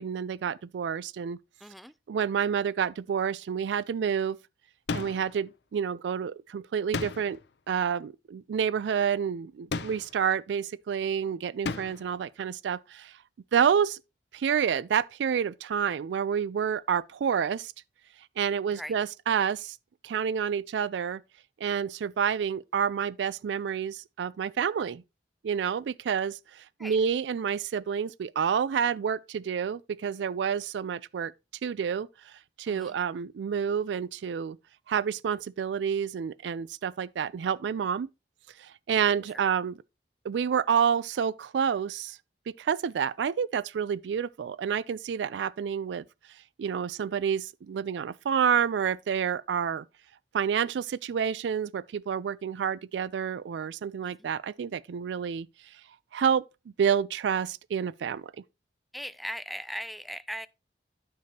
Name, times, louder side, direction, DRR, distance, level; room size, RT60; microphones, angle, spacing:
voice 1, 0.0-1.4 2.1-4.4 4.9-7.4 7.7-13.1 13.5-14.0 14.3-17.7 18.4-19.8 20.0-21.2 21.6-25.0 25.4-31.3 31.6-32.3 32.6-34.6 34.9-38.1 38.6-39.8 40.2-42.2 42.6-46.0 46.6-49.9 50.3-55.5 56.1-56.4 56.8-58.3, right 7 dB, 85° right, 0.3 m, -29 dB
voice 2, 1.6-1.9 18.7-19.0 26.8-27.0 32.7-33.0 39.3-39.4 54.0-54.3 58.9-60.5, equal, ahead, 0.3 m, -39 dB
sound 1, 4.9-5.4 6.9-7.5 9.7-10.3 11.6-12.1, left 4 dB, 70° left, 0.5 m, -34 dB
9.3 x 6.9 x 2.8 m
head